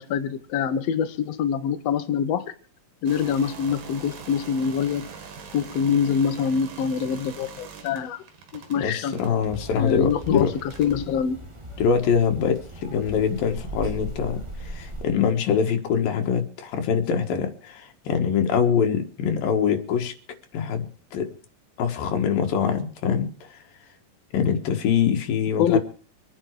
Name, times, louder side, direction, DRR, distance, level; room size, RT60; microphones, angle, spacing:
voice 1, 0.0-2.4 3.0-5.1 5.5-8.2 8.5-9.1 9.7-10.5 10.8-11.4 25.6-25.8, left 7 dB, 60° left, 10 dB, 2.0 m, -25 dB
sound 1, 3.1-11.1, right 6 dB, 80° right, 3.8 m, -43 dB
voice 2, 8.8-10.5 11.8-20.1 20.5-21.3 21.8-23.3 24.3-25.8, left 7 dB, 90° left, 5 dB, 3.4 m, -24 dB
sound 2, 9.4-15.0, right 1 dB, 20° right, 0.9 m, -38 dB
25.0 x 9.8 x 4.8 m, 0.39 s
omnidirectional pair, 3.9 m